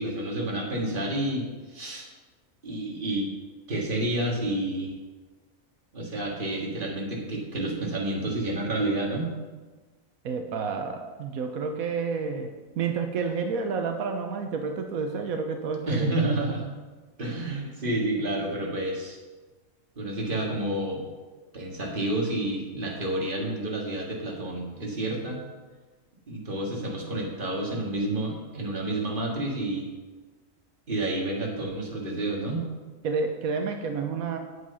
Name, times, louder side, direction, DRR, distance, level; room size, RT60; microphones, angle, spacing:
voice 1, 0.0-2.1 2.6-3.3 3.7-4.9 5.9-9.3 15.9-16.7 17.2-19.2 20.0-21.1 21.5-25.4 26.3-29.9 30.9-32.6, right 1 dB, 40° right, -2 dB, 2.1 m, -29 dB
voice 2, 10.2-16.1 33.0-34.4, right 5 dB, 85° right, 5 dB, 1.3 m, -30 dB
9.7 x 7.7 x 5.6 m, 1.3 s
omnidirectional pair, 1.4 m